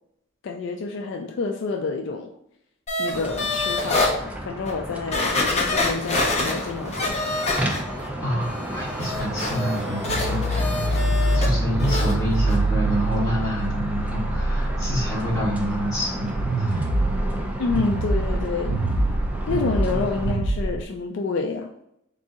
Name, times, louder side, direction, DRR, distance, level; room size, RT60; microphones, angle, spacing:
voice 1, 0.4-2.3 3.0-7.2 17.6-18.8 19.5-21.7, left 4 dB, 60° left, 3 dB, 0.3 m, -28 dB
sound 1, 2.9-4.1 4.7-4.8 5.1-8.1 8.4-11.5 11.8-12.1 12.5-12.6, left 2 dB, 35° left, 0.8 m, -26 dB
sound 2, 3.1-20.3, right 1 dB, 5° right, 0.5 m, -33 dB
voice 2, 8.2-11.0 11.3-16.3 16.6-16.8 19.9-20.0, equal, 20° left, -6 dB, 1.6 m, -27 dB
sound 3, 10.1-20.8, right 1 dB, 80° right, 0.5 m, -25 dB
3.9 x 2.7 x 3.6 m, 0.77 s
head